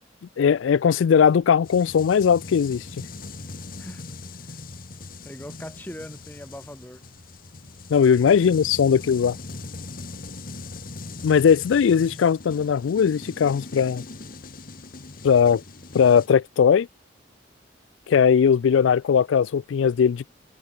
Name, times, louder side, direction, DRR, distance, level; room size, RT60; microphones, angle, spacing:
voice 1, 0.4-2.8 7.9-9.4 11.2-14.0 15.2-15.6 15.9-16.9 18.1-20.3, left 7 dB, 90° left, 0.4 m, -19 dB
sound 1, 1.6-16.3, left 3 dB, 50° left, 1.4 m, -40 dB
voice 2, 5.2-7.0 8.3-8.4, equal, 10° left, 7.8 m, -41 dB
head